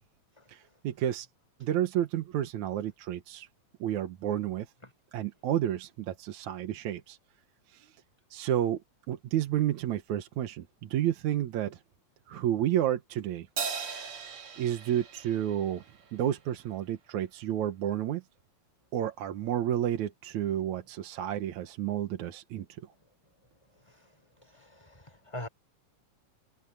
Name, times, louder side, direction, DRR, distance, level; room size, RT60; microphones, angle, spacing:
voice 1, 0.5-1.3 1.6-3.5 3.8-4.7 5.1-7.2 7.7-7.9 8.3-8.8 9.1-11.8 12.3-13.5 14.6-15.8 16.1-18.2 18.9-22.7, right 11 dB, 75° right, 2.5 m, -31 dB
Crash cymbal, 13.6-16.3, right 6 dB, 50° right, 2.8 m, -38 dB
voice 2, 24.5-25.5, left 1 dB, 10° left, 4.7 m, -42 dB
omnidirectional pair, 3.4 m